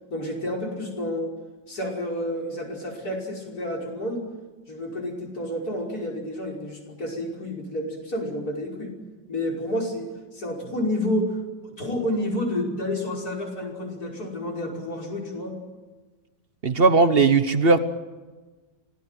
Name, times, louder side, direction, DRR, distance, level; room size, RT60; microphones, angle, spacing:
voice 1, 0.1-1.3 1.7-4.2 4.7-8.9 9.3-11.4 11.6-15.6, left 1 dB, 55° left, -1 dB, 6.1 m, -30 dB
voice 2, 16.6-17.8, right 4 dB, 35° right, 10 dB, 1.3 m, -18 dB
26.0 x 18.0 x 9.2 m, 1.3 s
omnidirectional pair, 1.9 m